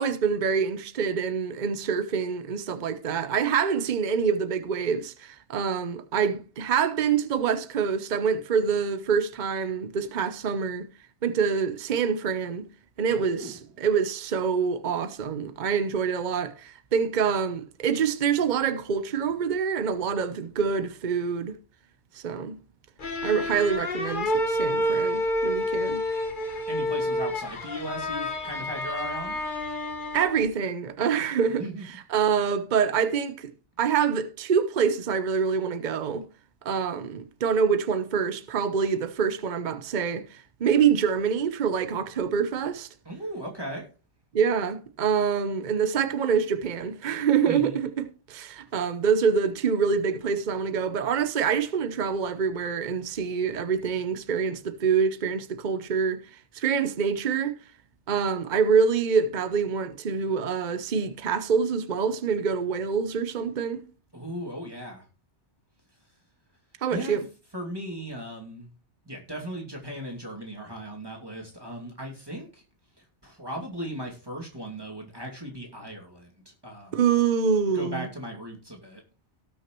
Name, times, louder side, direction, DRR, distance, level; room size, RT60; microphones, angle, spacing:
voice 1, 0.0-10.9 11.2-12.7 13.0-21.6 22.1-22.6 23.2-26.0 30.1-31.6 32.1-33.5 33.8-36.3 36.6-42.9 44.3-56.2 56.5-57.6 58.1-63.8 66.8-67.2 76.9-78.1, right 6 dB, 45° right, 0.9 m, -26 dB
voice 2, 13.1-13.6 26.4-29.4 31.5-31.8 43.0-43.8 47.5-47.8 64.1-65.1 66.9-67.2 67.5-68.7 69.0-72.6 73.0-77.0 77.7-79.0, equal, 20° right, 2.5 m, -37 dB
sound 1, 23.0-30.5, left 1 dB, 45° left, 1.4 m, -29 dB
18.5 x 6.3 x 3.1 m
omnidirectional pair, 1.2 m